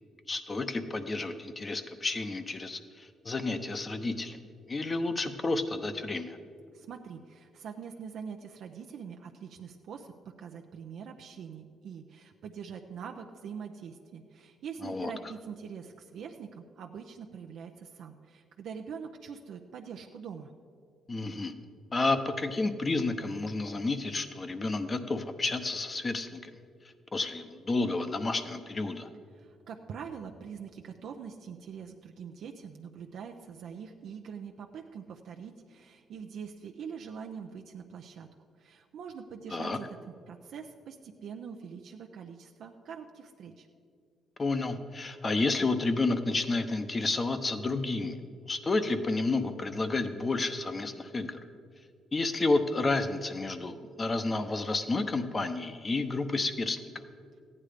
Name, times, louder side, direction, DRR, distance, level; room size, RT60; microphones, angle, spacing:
voice 1, 0.3-4.4 4.7-6.4 14.8-15.1 21.1-21.5 21.9-26.5 27.1-29.1 39.5-39.8 44.4-48.2 48.5-51.4 52.1-56.8, left 3 dB, 30° left, 9 dB, 0.9 m, -30 dB
voice 2, 6.7-10.1 10.4-20.5 29.3-40.0 40.3-43.7, right 6 dB, 70° right, 3 dB, 0.6 m, -44 dB
14.5 x 9.7 x 5.0 m, 2.2 s
cardioid pair, 90°, 0 cm